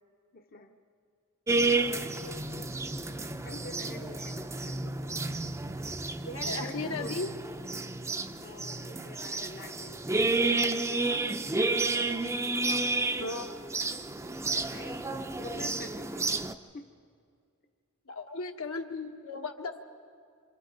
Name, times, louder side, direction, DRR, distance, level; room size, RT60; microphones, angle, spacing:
voice 1, 0.3-0.8 1.6-2.5 3.4-5.1 6.4-7.2 8.4-10.1 10.5-12.3 12.5-12.9 13.8-13.9 14.5-16.3 16.7-16.9, left 2 dB, 45° left, 4 dB, 0.8 m, -47 dB
sound 1, 1.5-16.5, right 3 dB, 15° right, 0.5 m, -31 dB
voice 2, 6.2-7.3 10.3-10.5 13.2-13.6 18.1-19.9, left 3 dB, 75° left, 4 dB, 1.4 m, -36 dB
28.0 x 26.5 x 3.9 m, 2.2 s
head